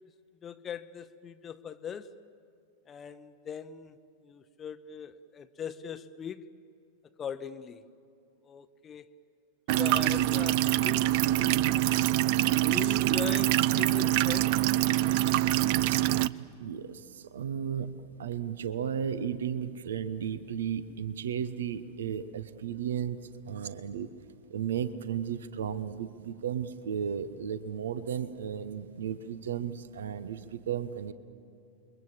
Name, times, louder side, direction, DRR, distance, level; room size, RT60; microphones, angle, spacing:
voice 1, 0.4-2.1 2.9-4.0 4.2-6.5 7.2-7.9 8.4-9.1 9.8-12.0 12.7-14.6, left 8 dB, 25° left, 0.8 m, -41 dB
sound 1, 9.7-16.3, right 14 dB, 45° right, 0.5 m, -25 dB
voice 2, 16.4-23.2 23.5-24.1 24.5-31.1, right 8 dB, 65° right, 1.0 m, -34 dB
29.0 x 23.0 x 7.5 m
figure-of-eight pair, 90°, 0 cm